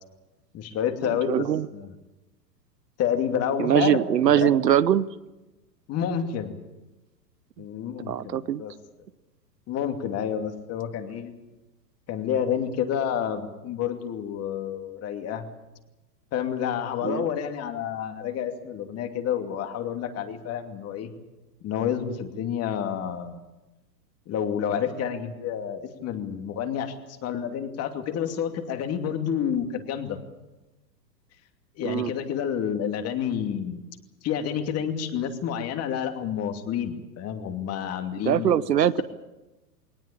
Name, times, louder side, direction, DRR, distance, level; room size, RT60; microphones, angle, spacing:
voice 1, 0.5-1.9 3.0-4.0 4.3-4.5 5.9-6.6 7.6-8.7 9.7-11.3 12.1-15.5 16.3-21.1 21.6-23.4 24.3-26.9 27.2-30.2 31.8-33.8 34.2-38.5, left 8 dB, 30° left, 6 dB, 2.6 m, -29 dB
voice 2, 1.1-1.7 3.6-5.1 8.1-8.6 17.0-17.2 31.8-32.1 38.3-39.0, right 10 dB, 75° right, 18 dB, 1.0 m, -22 dB
21.5 x 19.0 x 8.8 m, 1.0 s
hypercardioid pair, 110°, 49 cm